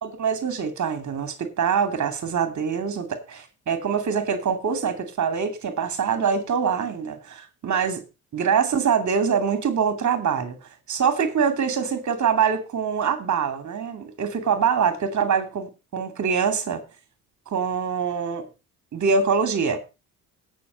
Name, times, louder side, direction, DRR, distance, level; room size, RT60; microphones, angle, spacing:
voice 1, 0.0-8.0 8.3-10.6 10.9-16.8 17.5-18.5 18.9-19.8, right 6 dB, 40° right, 2.5 m, -24 dB
17.0 x 6.0 x 4.2 m
figure-of-eight pair, 50°, 45 cm